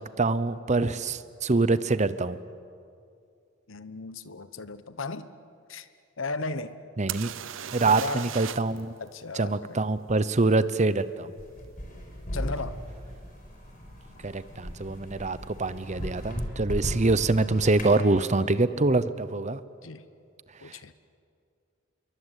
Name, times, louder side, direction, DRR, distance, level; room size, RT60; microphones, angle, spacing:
voice 1, 0.0-2.4 7.0-7.3 7.7-8.9 9.3-11.3 14.2-19.6 20.7-20.8, right 3 dB, 35° right, 0.8 m, -25 dB
voice 2, 3.7-5.3 5.7-5.9 6.2-6.8 7.9-8.3 9.0-9.9 12.3-12.8 19.8-20.0 20.6-20.9, left 3 dB, 85° left, 1.1 m, -35 dB
sound 1, 7.1-8.8 9.1-9.2 12.6-12.7 13.3-13.5 13.7-14.3 16.4-16.5 16.7-16.8, right 9 dB, 75° right, 0.8 m, -37 dB
sound 2, 11.4-18.0, equal, 45° left, 5.1 m, -36 dB
27.5 x 23.0 x 8.2 m
head